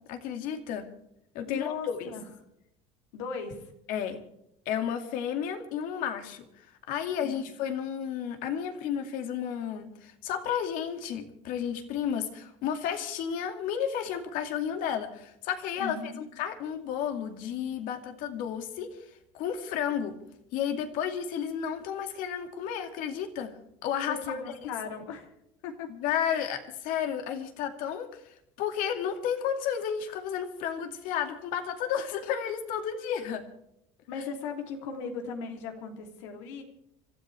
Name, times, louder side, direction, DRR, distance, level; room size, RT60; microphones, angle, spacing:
voice 1, 0.1-0.9 1.3-2.1 3.9-4.2 4.7-19.0 19.3-20.2 20.5-24.4 25.9-33.4, left 8 dB, 70° left, 6 dB, 2.4 m, -32 dB
voice 2, 1.5-2.2 3.1-3.7 7.2-7.5 15.8-16.2 24.1-25.3 25.6-25.9 26.3-26.6 34.1-36.6, left 5 dB, 85° left, 4 dB, 3.1 m, -37 dB
26.5 x 13.5 x 3.4 m, 0.78 s
supercardioid pair, 95°, 15 cm